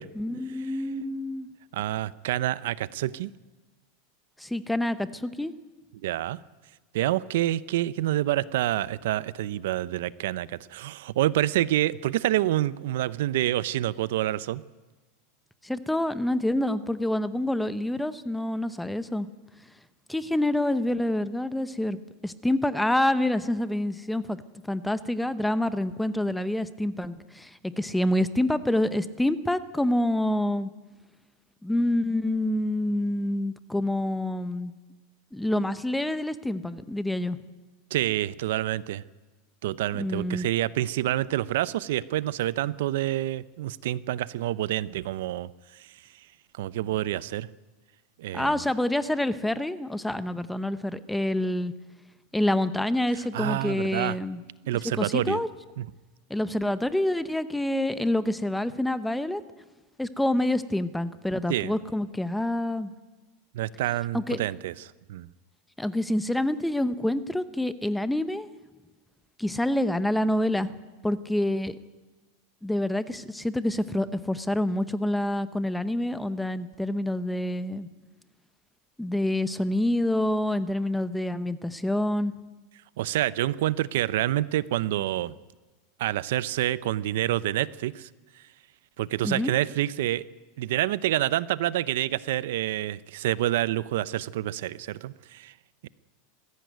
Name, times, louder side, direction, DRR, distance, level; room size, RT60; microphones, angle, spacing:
voice 1, 0.1-1.5 4.4-5.5 15.6-19.3 20.1-22.0 22.2-24.4 24.7-30.7 31.6-34.7 35.3-37.4 40.0-40.5 48.3-51.7 52.3-54.4 55.0-55.5 56.3-59.4 60.0-62.9 64.1-64.4 65.8-68.5 69.4-70.7 71.0-71.8 72.6-77.9 79.0-82.3 89.2-89.5, left 1 dB, 5° left, 13 dB, 0.8 m, -27 dB
voice 2, 1.7-3.3 6.0-6.4 6.9-14.6 37.9-39.0 39.6-45.9 46.6-47.5 48.2-48.6 53.3-54.2 54.7-55.4 55.8-55.9 61.5-61.7 63.5-64.7 65.1-65.3 83.0-85.3 86.0-88.1 89.0-90.2 90.6-95.5 95.8-95.9, right 14 dB, 75° right, 18 dB, 0.7 m, -27 dB
21.0 x 15.5 x 9.3 m, 1.2 s
supercardioid pair, 150°, 0 cm